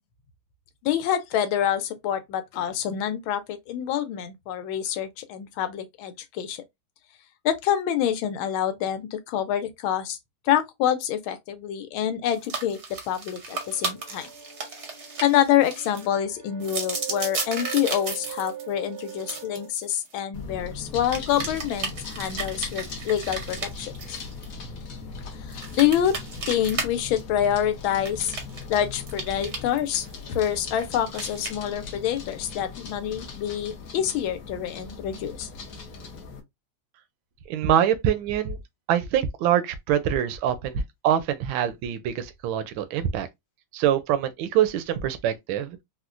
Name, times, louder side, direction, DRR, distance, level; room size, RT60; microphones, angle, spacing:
voice 1, 0.8-6.6 7.4-10.2 10.5-14.3 15.2-24.2 25.5-26.2 26.5-28.4 28.7-35.5, left 10 dB, 80° left, 1.4 m, -26 dB
sound 1, 12.3-16.0 16.6-20.1 21.1-24.4 25.5-26.9 27.2-27.3 28.0-28.7 29.1-30.8 31.1-31.5, right 4 dB, 55° right, 0.8 m, -34 dB
sound 2, 13.5-19.7, right 9 dB, 25° right, 0.4 m, -41 dB
sound 3, 20.3-36.4, left 4 dB, 60° left, 0.9 m, -39 dB
voice 2, 37.5-38.6 38.9-43.3 43.7-45.8, right 10 dB, 75° right, 1.3 m, -24 dB
4.2 x 2.1 x 2.4 m
omnidirectional pair, 2.3 m